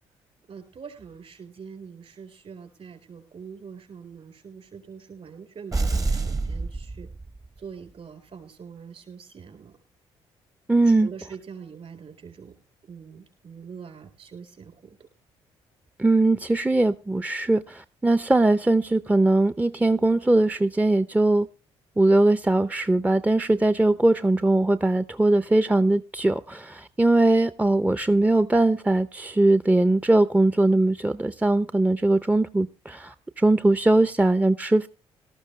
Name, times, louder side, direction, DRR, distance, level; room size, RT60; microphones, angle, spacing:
voice 1, 0.5-7.1 7.6-9.8 10.8-12.6 12.9-15.1, right 6 dB, 50° right, 8 dB, 4.1 m, -43 dB
sound 1, 5.7-7.6, right 3 dB, 25° right, 1.0 m, -27 dB
voice 2, 10.7-11.1 16.0-21.5 22.0-34.9, right 2 dB, 10° right, 13 dB, 0.6 m, -21 dB
18.5 x 13.0 x 3.2 m, 0.30 s
hypercardioid pair, 55°, 13 cm